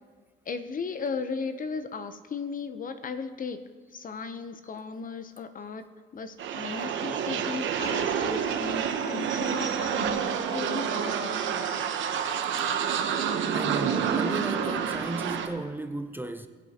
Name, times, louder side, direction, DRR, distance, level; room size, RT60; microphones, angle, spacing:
voice 1, 0.5-3.6 3.9-10.2 10.5-11.8, left 5 dB, 45° left, 0.7 m, -36 dB
sound 1, 6.4-15.5, right 7 dB, 75° right, 1.0 m, -28 dB
voice 2, 13.5-16.5, right 2 dB, 10° right, 0.5 m, -34 dB
18.5 x 7.9 x 2.9 m
cardioid pair, 90°, 20 cm